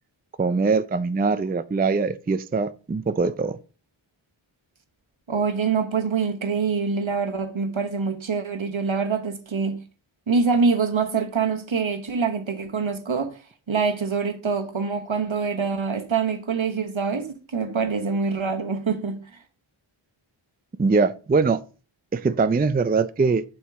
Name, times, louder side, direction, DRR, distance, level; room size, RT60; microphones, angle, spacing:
voice 1, 0.4-3.6 20.8-21.6 22.1-23.4, right 4 dB, 20° right, 0.4 m, -22 dB
voice 2, 5.3-9.8 10.3-13.4 13.7-19.2, right 5 dB, 70° right, 1.2 m, -25 dB
7.1 x 6.3 x 3.6 m
wide cardioid pair, 45°, 49 cm